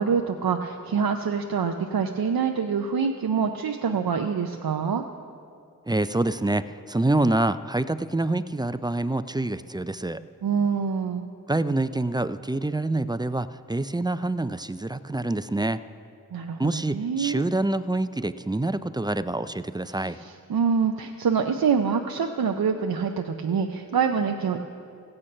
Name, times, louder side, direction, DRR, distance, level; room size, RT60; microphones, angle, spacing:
voice 1, 0.0-5.0 10.4-11.3 16.3-17.4 19.9-24.6, right 6 dB, 90° right, 5 dB, 0.6 m, -25 dB
voice 2, 5.9-10.2 11.5-15.8 16.6-20.2, right 2 dB, 15° right, 13 dB, 0.3 m, -26 dB
15.5 x 8.8 x 5.4 m, 2.4 s
wide cardioid pair, 40°, 35 cm